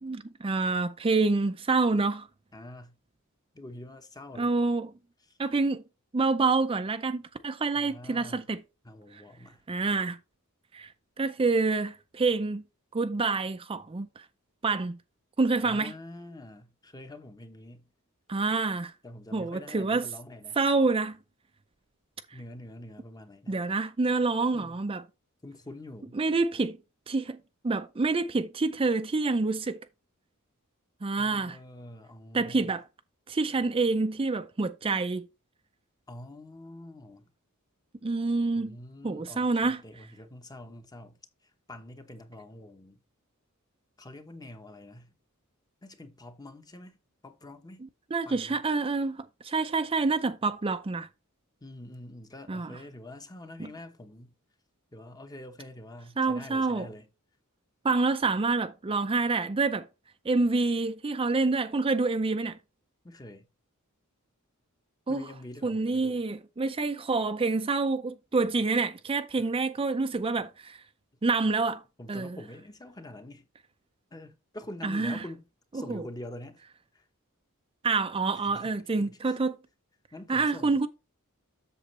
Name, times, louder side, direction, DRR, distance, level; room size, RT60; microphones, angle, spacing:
voice 1, 0.0-2.3 4.4-4.9 5.4-5.8 6.1-8.6 9.1-9.2 9.7-10.2 10.7-10.9 11.2-12.6 12.9-14.2 14.6-15.0 15.4-15.9 18.3-18.9 19.3-20.1 20.6-21.2 23.5-25.0 26.1-26.8 27.1-27.4 27.6-29.8 31.0-31.6 32.3-32.8 33.3-35.3 38.0-38.8 39.0-39.8 47.8-51.1 52.5-52.8 53.6-53.7 56.2-56.9 57.8-59.9 60.2-62.6 65.1-65.2 65.6-70.8 71.2-71.8 72.1-72.4 74.8-75.2 75.7-76.0 77.8-79.6 80.3-80.9, right 3 dB, 25° right, 0.4 m, -27 dB
voice 2, 2.5-3.0 3.5-4.5 5.3-5.4 7.7-8.5 8.8-9.6 15.6-17.9 19.0-20.6 22.3-23.6 24.5-24.8 25.4-26.2 31.2-32.7 36.1-37.3 38.6-41.2 41.7-43.0 44.0-45.1 45.8-47.0 47.2-47.8 48.2-48.6 51.6-54.3 54.9-57.1 63.0-63.5 65.1-66.2 69.4-69.5 72.0-73.5 74.1-75.4 75.7-76.6 76.9-77.0 78.3-78.7 79.0-79.4 80.1-80.8, left 1 dB, 20° left, 0.9 m, -45 dB
8.0 x 6.9 x 3.2 m
head